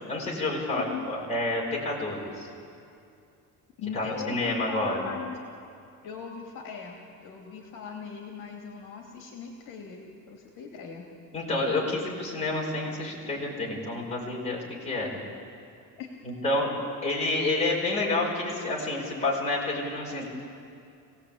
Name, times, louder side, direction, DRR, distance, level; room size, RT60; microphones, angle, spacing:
voice 1, 0.1-2.5 3.9-5.0 11.3-15.1 16.2-16.7 17.0-20.2, left 2 dB, 20° left, -4 dB, 5.2 m, -29 dB
voice 2, 3.8-5.4 6.0-11.1 16.0-16.1, left 6 dB, 60° left, 1 dB, 3.0 m, -39 dB
25.0 x 18.0 x 8.8 m, 2.5 s
cardioid pair, 170°, 36 cm